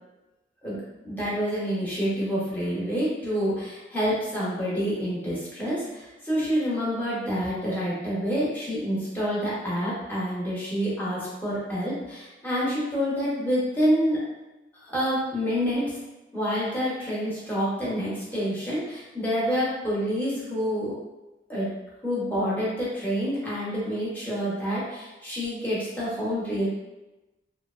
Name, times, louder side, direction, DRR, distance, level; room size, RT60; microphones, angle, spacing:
voice 1, 1.0-14.2 14.7-16.0 16.3-20.9 21.5-21.7 22.0-26.7, equal, 10° left, -9 dB, 0.8 m, -27 dB
2.8 x 2.1 x 2.4 m, 1.1 s
head